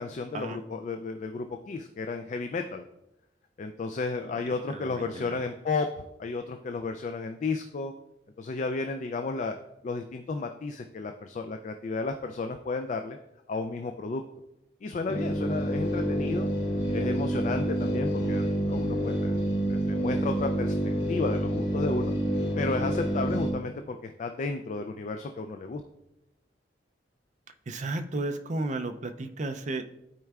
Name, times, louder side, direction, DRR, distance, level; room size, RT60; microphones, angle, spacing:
voice 1, 0.0-2.9 3.6-5.9 6.2-7.9 8.4-9.6 9.8-13.2 13.5-14.2 14.8-16.5 16.9-19.4 19.7-20.7 21.1-22.1 22.6-25.8, left 3 dB, 40° left, 6 dB, 0.3 m, -33 dB
voice 2, 4.7-5.4 27.7-29.8, right 2 dB, 40° right, 7 dB, 0.5 m, -33 dB
sound 1, 15.1-23.5, right 1 dB, 60° left, 1.9 m, -28 dB
12.5 x 4.5 x 2.4 m, 0.89 s
head